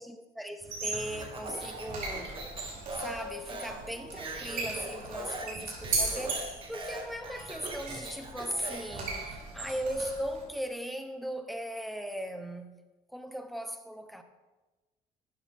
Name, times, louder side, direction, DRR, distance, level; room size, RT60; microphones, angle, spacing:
voice 1, 0.0-2.4 3.0-12.8 13.1-14.2, equal, ahead, 1.0 m, -38 dB
sound 1, 0.6-10.4, right 2 dB, 55° right, 4.2 m, -37 dB
Speech, 1.2-9.0, right 2 dB, 30° right, 2.3 m, -41 dB
12.0 x 9.3 x 3.7 m
cardioid pair, 110°, 17 cm